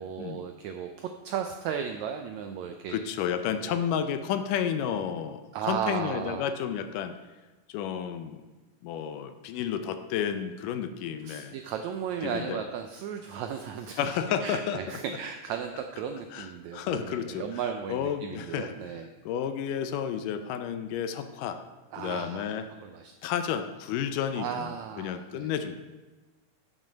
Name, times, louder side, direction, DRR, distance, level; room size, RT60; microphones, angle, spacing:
voice 1, 0.0-3.0 3.6-3.9 5.5-6.4 11.2-19.1 21.9-22.5 22.8-23.1 24.4-25.5, right 8 dB, 85° right, 6 dB, 1.6 m, -35 dB
voice 2, 2.9-7.1 7.7-8.4 8.8-11.6 12.2-12.6 14.0-14.8 16.3-17.6 17.9-18.7 19.3-21.6 22.0-22.7 23.2-25.8, left 8 dB, 80° left, 9 dB, 2.1 m, -31 dB
10.5 x 6.3 x 5.1 m, 1.2 s
omnidirectional pair, 3.8 m